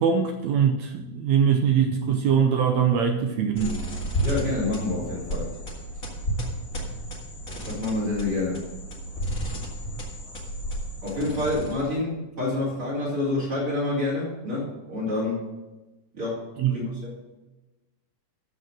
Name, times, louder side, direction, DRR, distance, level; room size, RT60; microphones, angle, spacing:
voice 1, 0.0-3.8 16.6-16.9, right 7 dB, 75° right, 5 dB, 1.6 m, -22 dB
sound 1, 3.5-12.0, right 1 dB, 30° left, 1.9 m, -32 dB
voice 2, 4.2-5.5 7.6-8.6 11.0-15.4 16.1-16.4 16.7-17.1, left 2 dB, 40° right, -6 dB, 3.7 m, -28 dB
13.5 x 4.8 x 6.4 m, 1.1 s
omnidirectional pair, 3.8 m